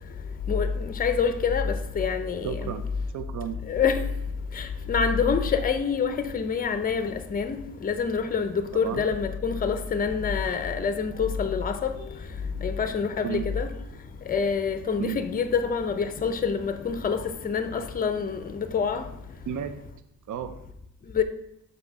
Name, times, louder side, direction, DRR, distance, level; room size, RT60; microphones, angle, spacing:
voice 1, 0.5-2.7 3.7-4.0 4.5-11.9 12.6-13.7 14.3-19.1 21.1-21.2, left 6 dB, 25° left, 0.5 m, -26 dB
voice 2, 2.4-3.6 8.7-9.1 13.2-13.5 15.0-15.2 19.5-19.7 20.3-20.6, right 9 dB, 60° right, 0.5 m, -33 dB
6.5 x 2.8 x 5.3 m
cardioid pair, 80°, 34 cm